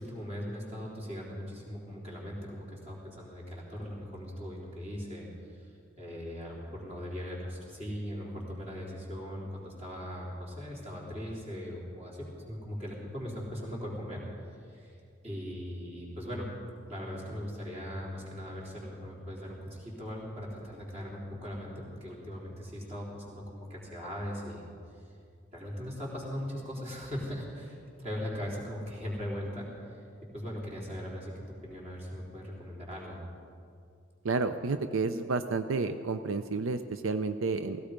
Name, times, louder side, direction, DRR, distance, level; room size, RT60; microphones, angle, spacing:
voice 1, 0.0-14.2 14.5-15.0 15.2-16.5 16.9-24.7 25.5-30.0 30.3-33.2, equal, 30° right, -4 dB, 3.9 m, -39 dB
voice 2, 34.2-37.8, right 4 dB, 90° right, 10 dB, 0.6 m, -30 dB
17.0 x 16.5 x 5.2 m, 2.3 s
head